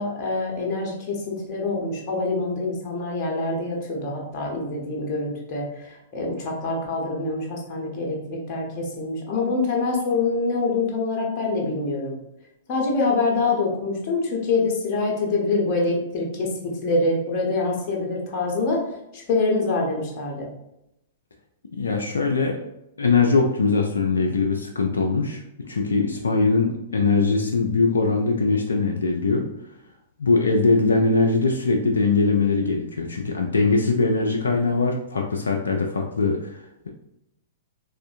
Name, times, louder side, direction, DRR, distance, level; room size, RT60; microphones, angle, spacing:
voice 1, 0.0-12.2 12.7-18.8 19.1-20.5, left 3 dB, 35° left, -2 dB, 0.8 m, -25 dB
voice 2, 21.7-22.6 23.0-29.5 30.2-36.9, left 3 dB, 70° left, 1 dB, 0.3 m, -21 dB
3.4 x 2.4 x 2.4 m, 0.84 s
figure-of-eight pair, 105°, 0 cm